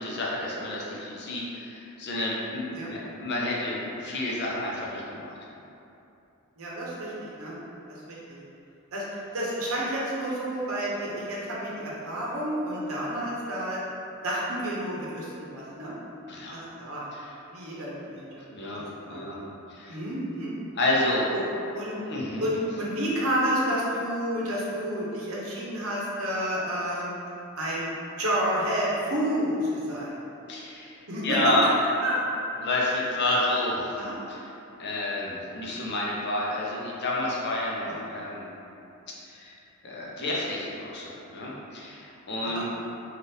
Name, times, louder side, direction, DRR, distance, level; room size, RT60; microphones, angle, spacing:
voice 1, 0.0-5.3 16.3-16.6 17.1-17.3 18.5-18.8 19.1-19.4 19.7-20.0 20.7-21.3 22.0-22.4 30.5-31.7 32.6-34.0 34.3-34.4 34.8-38.5 39.2-39.5 39.8-42.6, left 1 dB, 50° left, -4 dB, 0.6 m, -29 dB
voice 2, 6.6-7.1 7.4-7.5 7.9-8.4 8.9-13.8 14.2-15.9 16.5-17.0 17.5-18.4 19.0-19.2 19.9-20.6 21.3-21.4 21.7-22.0 22.4-27.1 27.6-27.8 28.2-30.1 31.1-31.4 32.0-32.2 34.0-34.2 37.9-38.0 42.4-42.6, equal, 80° right, -6 dB, 0.7 m, -30 dB
3.4 x 2.4 x 2.7 m, 2.8 s
head